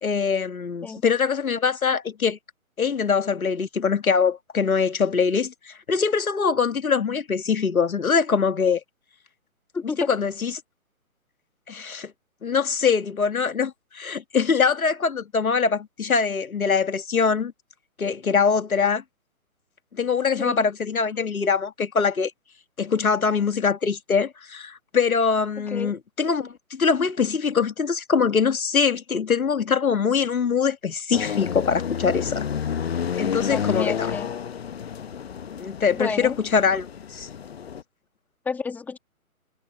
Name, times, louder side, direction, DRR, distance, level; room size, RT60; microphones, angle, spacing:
voice 1, 0.0-2.4 2.8-8.8 10.1-10.5 11.7-12.1 12.4-17.5 18.0-19.0 19.9-22.3 22.8-32.4 33.2-34.1 35.6-37.3, left 5 dB, 70° left, 1.9 m, -23 dB
voice 2, 9.7-10.1 20.4-20.6 25.7-26.0 33.5-34.3 35.9-36.4 38.5-39.0, left 5 dB, 5° left, 2.3 m, -30 dB
sound 1, 31.1-37.8, left 8 dB, 45° left, 1.1 m, -30 dB
figure-of-eight pair, 150°, 43 cm